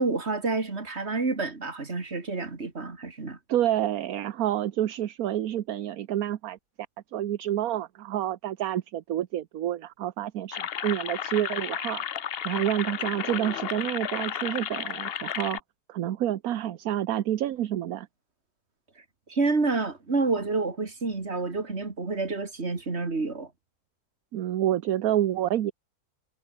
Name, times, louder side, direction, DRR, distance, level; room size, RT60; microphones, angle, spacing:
voice 1, 0.0-3.4 19.3-23.5, right 3 dB, 40° right, 3.0 m, -28 dB
voice 2, 3.5-6.6 7.1-12.0 12.4-15.6 15.9-18.1 24.3-25.7, right 12 dB, 65° right, 1.2 m, -28 dB
sound 1, 10.5-15.6, left 9 dB, 50° left, 0.7 m, -33 dB
omnidirectional pair, 1.8 m